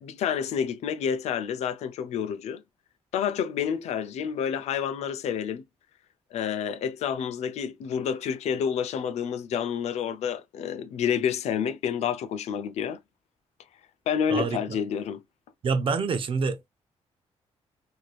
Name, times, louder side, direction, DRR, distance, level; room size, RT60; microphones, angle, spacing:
voice 1, 0.0-2.6 3.1-5.6 6.3-13.0 14.1-15.2, left 8 dB, 85° left, 0.5 m, -29 dB
voice 2, 15.6-16.7, right 5 dB, 50° right, 0.6 m, -26 dB
3.2 x 2.7 x 2.3 m
cardioid pair, 125°, 11 cm